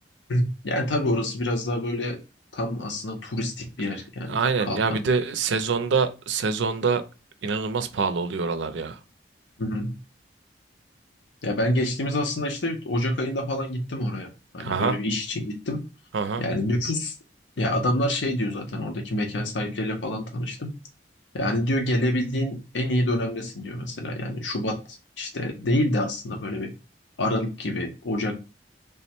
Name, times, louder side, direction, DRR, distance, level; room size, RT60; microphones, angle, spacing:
voice 1, 0.3-2.2 2.5-5.0 9.6-9.9 11.4-14.3 14.5-15.8 16.4-17.2 17.6-20.7 21.3-26.7 27.2-28.4, left 1 dB, 85° left, 0.7 m, -27 dB
voice 2, 4.3-7.0 7.4-9.0 14.6-15.0 16.1-16.4, right 5 dB, 85° right, 0.5 m, -25 dB
3.4 x 2.1 x 4.3 m
head